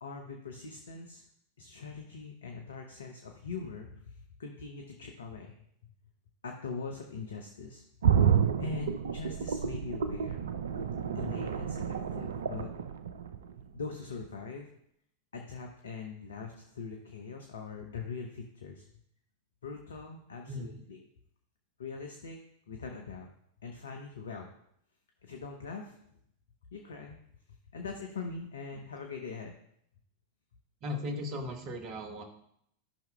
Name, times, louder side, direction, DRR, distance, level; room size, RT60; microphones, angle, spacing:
voice 1, 0.0-1.2 1.6-5.6 6.4-7.8 8.6-10.4 11.1-12.7 13.7-14.7 15.3-18.9 19.6-21.0 21.8-22.4 22.7-23.3 23.6-24.5 25.2-26.0 26.7-27.2 27.7-29.5, left 4 dB, 70° left, 3 dB, 0.7 m, -42 dB
sound 1, 8.0-13.8 14.2-14.3, right 7 dB, 65° right, 0.4 m, -30 dB
voice 2, 30.8-32.2, left 1 dB, 35° right, 5 dB, 1.1 m, -37 dB
12.5 x 5.8 x 2.2 m, 0.72 s
figure-of-eight pair, 90°, 0 cm